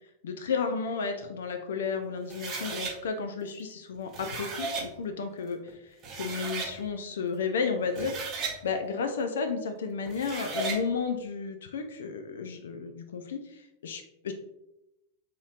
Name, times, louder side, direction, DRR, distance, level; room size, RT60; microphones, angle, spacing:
voice 1, 0.2-5.6 6.1-14.3, left 5 dB, 65° left, 6 dB, 0.3 m, -32 dB
sound 1, 2.3-2.9 3.9-4.9 5.7-5.8 6.0-6.7 7.8-8.6 10.1-10.8, right 4 dB, 35° right, 0.7 m, -35 dB
4.0 x 2.9 x 2.4 m, 0.89 s
figure-of-eight pair, 90°, 0 cm